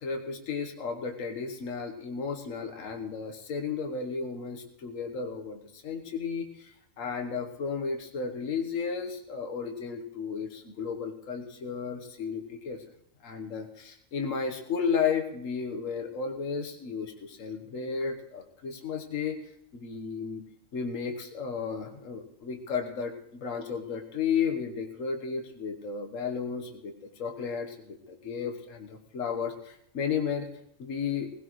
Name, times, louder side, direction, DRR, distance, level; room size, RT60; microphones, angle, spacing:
voice 1, 0.0-6.7 7.0-12.8 13.2-19.4 19.7-20.4 20.7-23.1 23.4-30.5 30.8-31.3, left 6 dB, 75° left, 4 dB, 1.6 m, -33 dB
19.0 x 16.5 x 3.1 m, 0.70 s
omnidirectional pair, 1.4 m